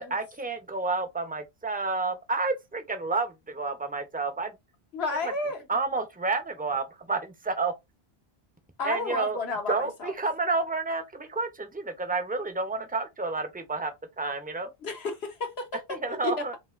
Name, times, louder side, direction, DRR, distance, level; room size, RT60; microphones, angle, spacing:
voice 1, 0.0-4.5 5.7-7.7 8.8-9.4 9.7-14.7 15.9-16.6, right 3 dB, 10° right, 0.6 m, -30 dB
voice 2, 4.9-5.6 8.8-10.1 14.8-15.8 16.1-16.6, left 3 dB, 75° left, 1.3 m, -32 dB
5.3 x 2.7 x 2.5 m
omnidirectional pair, 1.1 m